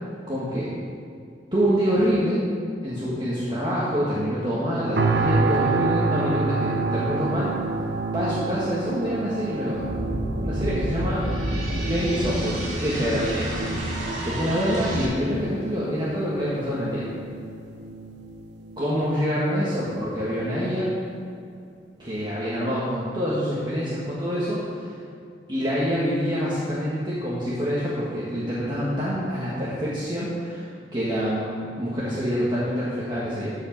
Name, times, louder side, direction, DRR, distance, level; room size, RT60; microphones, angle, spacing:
voice 1, 0.3-0.7 1.5-2.4 2.8-7.5 8.1-9.8 10.4-11.3 11.8-13.6 14.2-17.1 18.8-20.9 22.0-24.9 25.5-33.5, equal, 25° right, -8 dB, 1.5 m, -26 dB
sound 1, 5.0-20.0 20.5-20.6, right 3 dB, 70° right, 0.8 m, -29 dB
sound 2, 9.8-15.0, equal, 40° right, 2.5 m, -29 dB
13.5 x 4.9 x 5.3 m, 2.5 s
head